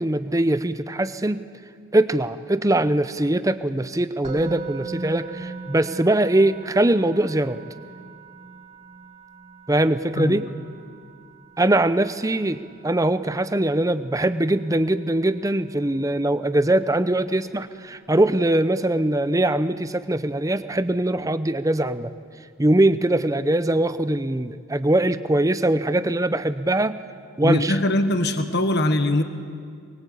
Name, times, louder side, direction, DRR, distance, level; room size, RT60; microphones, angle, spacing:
voice 1, 0.0-1.4 1.9-7.6 9.7-10.5 11.6-22.1 22.6-27.0 27.4-27.8, right 1 dB, 15° right, 12 dB, 0.6 m, -22 dB
Musical instrument, 4.2-15.4, right 4 dB, 30° right, 3.7 m, -40 dB
voice 2, 27.4-29.2, left 1 dB, 50° left, 8 dB, 1.3 m, -21 dB
23.0 x 22.0 x 8.5 m, 2.2 s
head